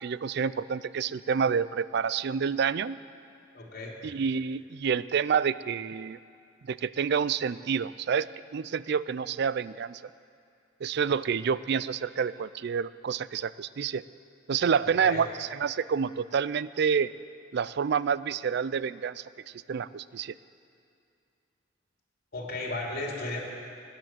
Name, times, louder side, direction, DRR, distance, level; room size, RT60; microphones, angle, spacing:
voice 1, 0.0-3.0 4.0-6.2 6.7-10.0 10.8-14.0 14.5-17.1 17.5-19.2 19.7-20.3, right 6 dB, 60° right, 17 dB, 0.4 m, -28 dB
voice 2, 3.5-3.9 14.8-15.2 22.3-23.5, left 2 dB, 55° left, -1 dB, 3.1 m, -35 dB
17.0 x 10.5 x 7.6 m, 2.4 s
head